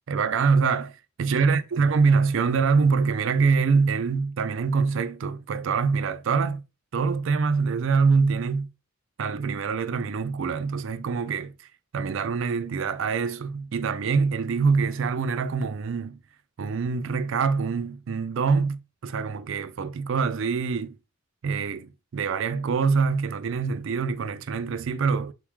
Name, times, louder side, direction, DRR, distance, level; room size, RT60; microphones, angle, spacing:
voice 1, 0.1-0.9 1.2-6.6 6.9-8.7 9.2-11.5 11.9-16.2 16.6-21.0 21.4-25.3, right 5 dB, 60° right, 0.4 m, -24 dB
4.0 x 3.1 x 3.5 m
head